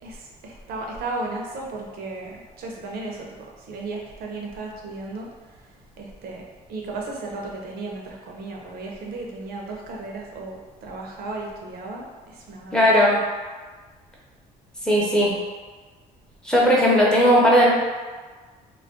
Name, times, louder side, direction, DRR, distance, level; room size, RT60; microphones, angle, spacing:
voice 1, 0.0-3.3 3.6-5.3 5.6-5.7 6.0-6.4 6.7-12.9, right 2 dB, 65° right, -1 dB, 0.6 m, -35 dB
voice 2, 12.7-13.2 14.8-15.3 16.4-17.7, equal, 5° left, -5 dB, 0.7 m, -17 dB
2.3 x 2.2 x 3.6 m, 1.4 s
cardioid pair, 110°, 17 cm